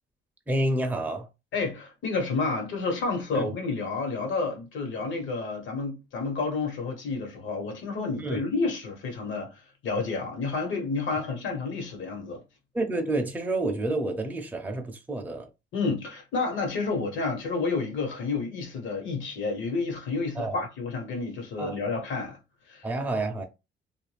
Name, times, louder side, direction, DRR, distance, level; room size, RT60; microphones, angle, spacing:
voice 1, 0.5-1.3 3.3-3.5 8.2-8.4 12.7-15.5 20.4-20.6 21.6-21.7 22.8-23.4, right 2 dB, 10° right, 0.5 m, -29 dB
voice 2, 1.5-9.5 9.8-12.4 15.7-22.4 22.7-22.8, left 4 dB, 75° left, 1.2 m, -30 dB
2.5 x 2.3 x 3.2 m
cardioid pair, 90°, 20 cm